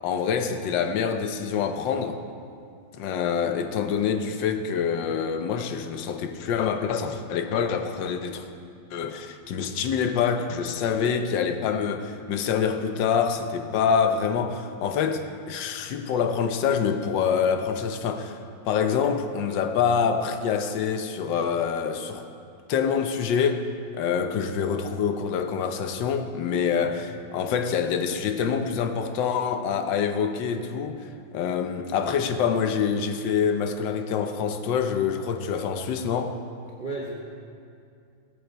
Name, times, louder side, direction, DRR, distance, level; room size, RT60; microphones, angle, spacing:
voice 1, 0.0-2.2 3.0-8.5 8.9-18.4 18.6-22.3 22.7-23.6 23.9-31.0 31.3-36.4, left 7 dB, 70° left, 7 dB, 1.5 m, -26 dB
voice 2, 26.6-26.9 36.8-37.2, right 2 dB, 30° right, -3 dB, 1.1 m, -35 dB
20.0 x 8.5 x 4.6 m, 2.4 s
omnidirectional pair, 2.2 m